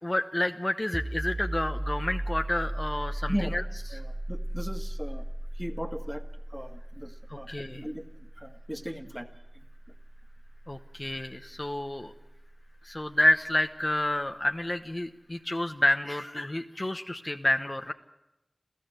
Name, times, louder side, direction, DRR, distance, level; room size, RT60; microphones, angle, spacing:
voice 1, 0.0-3.6 7.5-7.8 10.7-12.1 12.8-17.9, left 1 dB, 35° left, 6 dB, 0.9 m, -29 dB
sound 1, 0.9-12.4, right 1 dB, 30° right, 0.9 m, -36 dB
voice 2, 3.9-5.3 5.5-6.2 6.5-9.3 9.5-9.7, equal, 5° right, 7 dB, 1.8 m, -37 dB
28.0 x 15.0 x 8.0 m, 0.93 s
wide cardioid pair, 40°, 0 cm